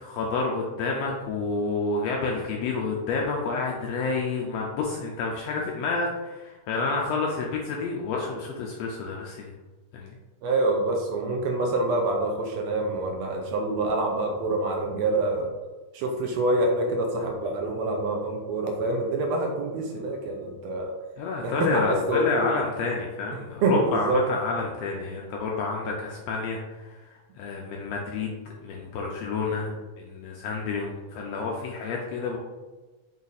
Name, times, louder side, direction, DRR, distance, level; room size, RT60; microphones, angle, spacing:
voice 1, 0.0-9.5 9.9-10.1 21.2-32.4, left 4 dB, 80° left, -1 dB, 1.5 m, -29 dB
voice 2, 10.4-15.5 15.9-20.9 21.4-22.5 23.6-24.2 25.8-25.9 29.5-29.8, right 2 dB, 80° right, 1 dB, 1.7 m, -26 dB
5.4 x 2.4 x 4.0 m, 1.2 s
omnidirectional pair, 3.4 m